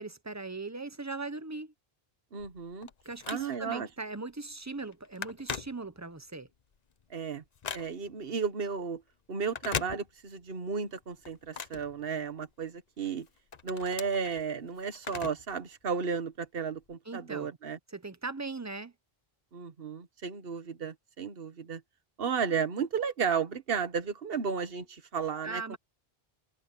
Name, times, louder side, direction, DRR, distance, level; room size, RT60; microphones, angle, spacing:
voice 1, 0.0-1.7 3.0-6.5 17.1-17.5 17.9-18.9 25.4-25.8, right 3 dB, 20° right, 0.8 m, -39 dB
voice 2, 2.3-2.9 3.3-3.9 7.1-7.4 7.7-9.0 9.3-13.3 13.6-17.8 19.5-21.8 22.2-25.8, right 6 dB, 65° right, 1.5 m, -33 dB
Telephone, 2.4-3.8 4.3-4.5 4.8-6.3 6.7-8.2 9.4-10.5 10.8-12.6 13.0-15.6 15.9-16.0 16.8-16.9, left 6 dB, 45° left, 0.9 m, -40 dB
omnidirectional pair, 1.0 m